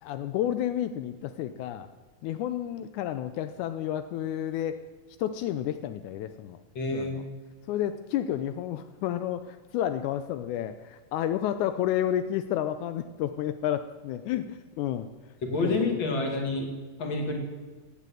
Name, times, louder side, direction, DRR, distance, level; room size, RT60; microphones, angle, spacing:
voice 1, 0.0-1.9 2.2-4.8 5.2-6.6 6.9-7.2 7.7-15.1 15.6-15.9, left 11 dB, 85° left, 11 dB, 1.7 m, -31 dB
voice 2, 6.7-7.1 15.4-16.7 17.0-17.4, left 3 dB, 35° left, 2 dB, 2.8 m, -28 dB
17.5 x 8.6 x 7.8 m, 1.3 s
omnidirectional pair, 4.1 m